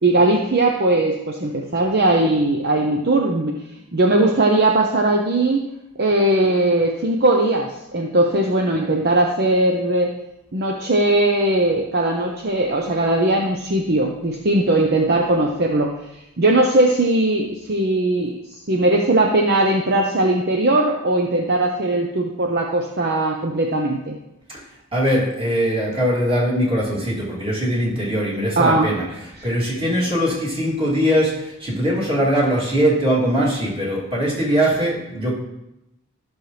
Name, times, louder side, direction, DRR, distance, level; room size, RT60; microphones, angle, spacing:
voice 1, 0.0-3.5 3.9-5.7 6.0-10.1 10.5-24.2 28.6-28.9 29.4-29.5, right 2 dB, 50° right, 1 dB, 0.8 m, -19 dB
voice 2, 24.9-29.0 29.4-35.3, equal, 25° right, -6 dB, 2.9 m, -21 dB
13.5 x 6.4 x 3.3 m, 0.90 s
head